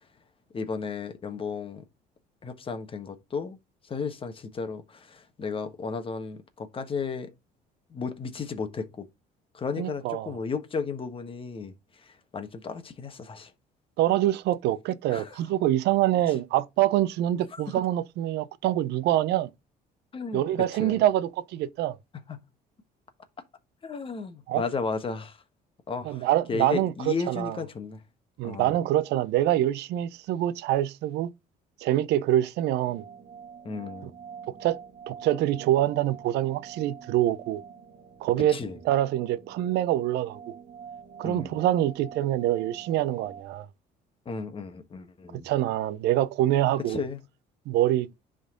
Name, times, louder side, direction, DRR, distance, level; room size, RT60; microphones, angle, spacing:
voice 1, 0.5-1.8 2.4-3.6 3.8-7.3 7.9-9.1 9.5-11.7 12.0-13.5 15.1-15.4 17.7-17.8 20.1-20.4 20.8-21.0 22.1-22.4 23.8-25.4 25.9-28.0 28.4-28.8 33.6-34.1 38.5-38.8 41.2-41.6 44.2-45.5 46.9-47.2, left 5 dB, 30° left, 1.4 m, -34 dB
voice 2, 9.8-10.3 14.0-19.5 20.3-22.0 24.5-24.6 26.0-27.6 28.4-31.3 31.8-33.0 34.5-34.8 35.1-37.6 38.2-38.6 38.8-40.4 41.2-43.7 45.4-47.1 47.7-48.1, right 13 dB, 80° right, 0.6 m, -25 dB
sound 1, 32.8-43.4, right 7 dB, 55° right, 1.3 m, -46 dB
10.0 x 3.9 x 3.8 m
cardioid pair, 110°, 17 cm